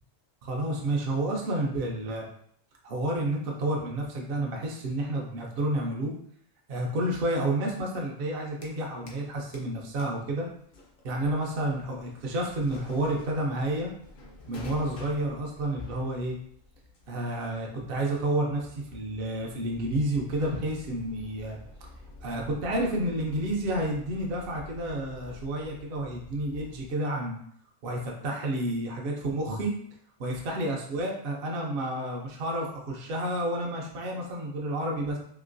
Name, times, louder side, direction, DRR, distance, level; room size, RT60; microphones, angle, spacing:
voice 1, 0.4-2.2 2.8-6.1 6.7-10.5 11.0-13.9 14.5-16.4 17.1-21.9 22.2-27.4 27.8-29.7 30.2-35.2, right 1 dB, 60° right, -1 dB, 0.8 m, -30 dB
sound 1, 8.4-9.3 9.5-27.0, left 3 dB, 60° left, 0.8 m, -48 dB
2.9 x 2.8 x 2.5 m, 0.66 s
omnidirectional pair, 1.2 m